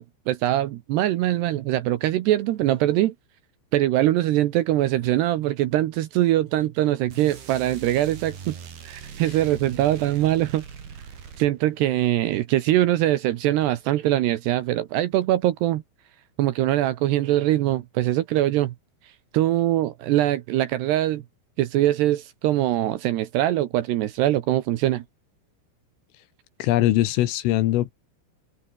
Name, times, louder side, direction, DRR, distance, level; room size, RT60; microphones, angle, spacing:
voice 1, 0.0-3.1 3.7-8.6 8.8-10.6 11.4-15.8 16.4-18.7 19.3-21.2 21.6-25.0, right 14 dB, 75° right, 2.6 m, -22 dB
sound 1, 7.1-11.9, right 7 dB, 55° right, 5.6 m, -40 dB
voice 2, 26.6-27.9, left 15 dB, 75° left, 3.9 m, -21 dB
omnidirectional pair, 6.0 m